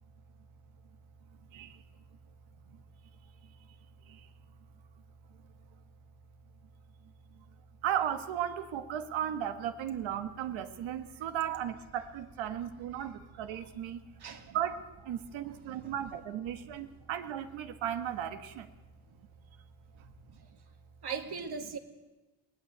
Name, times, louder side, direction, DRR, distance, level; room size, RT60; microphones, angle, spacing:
voice 1, 7.8-13.1 13.4-14.0 14.5-14.7 15.1-18.6, right 10 dB, 90° right, 9 dB, 1.6 m, -35 dB
voice 2, 14.1-14.6 15.4-15.9 20.3-20.5 21.0-21.8, right 5 dB, 60° right, 4 dB, 2.7 m, -41 dB
23.5 x 17.5 x 8.0 m, 1.1 s
cardioid pair, 80°, 45 cm